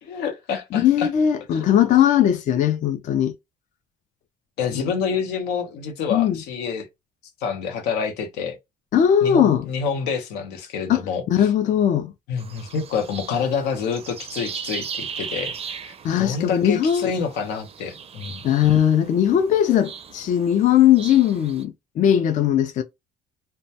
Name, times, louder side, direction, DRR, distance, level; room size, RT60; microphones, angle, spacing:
voice 1, 0.0-1.1 1.5-1.7 4.6-6.9 7.4-8.6 9.2-11.5 12.3-18.4, left 6 dB, 90° left, 0.7 m, -27 dB
voice 2, 0.7-3.3 4.7-4.9 6.1-6.4 8.9-9.6 10.9-11.0 11.3-12.1 16.0-17.1 18.4-22.8, left 10 dB, 50° left, 0.4 m, -19 dB
sound 1, 12.4-21.6, right 7 dB, 35° right, 0.4 m, -38 dB
2.2 x 2.1 x 2.7 m
cardioid pair, 110°, 17 cm